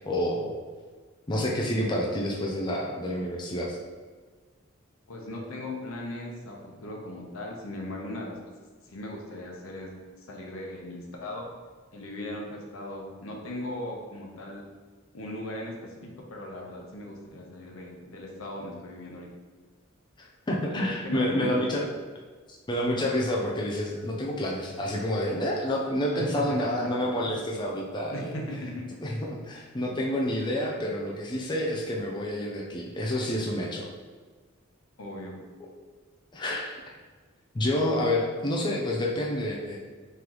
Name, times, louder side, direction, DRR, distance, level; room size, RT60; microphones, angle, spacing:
voice 1, 0.1-0.5 1.3-3.8 20.2-21.8 22.5-28.3 29.0-33.9 36.3-36.8 37.5-39.8, left 1 dB, 20° left, -1 dB, 0.4 m, -28 dB
voice 2, 5.1-8.4 8.8-11.5 11.9-14.6 15.1-19.3 20.8-21.8 26.1-27.1 28.1-29.0 35.0-35.4, left 1 dB, 85° left, -1 dB, 0.8 m, -38 dB
3.8 x 3.3 x 3.0 m, 1.4 s
head